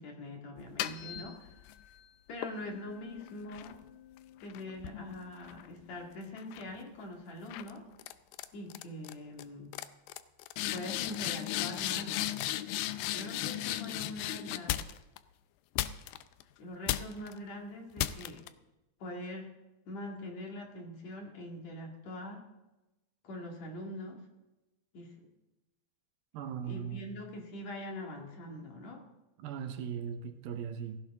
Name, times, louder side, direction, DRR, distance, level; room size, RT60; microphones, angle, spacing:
voice 1, 0.0-1.5 2.3-3.8 4.4-7.8 8.5-9.8 10.7-12.3 13.1-14.8 16.6-18.4 19.0-19.5 19.9-22.4 23.2-24.2 24.9-25.1 26.6-29.0, left 1 dB, 55° left, 3.2 m, -43 dB
sound 1, 0.6-1.8 2.4-6.0 6.4-6.8 7.5-7.7 8.0-8.5 8.7-9.1 9.4-9.5 9.7-15.2 15.8-16.4 16.9-17.3 18.0-18.5, left 13 dB, 85° left, 2.3 m, -36 dB
voice 2, 26.3-27.1 29.4-31.0, right 8 dB, 90° right, 3.0 m, -38 dB
17.5 x 15.5 x 3.7 m
omnidirectional pair, 4.1 m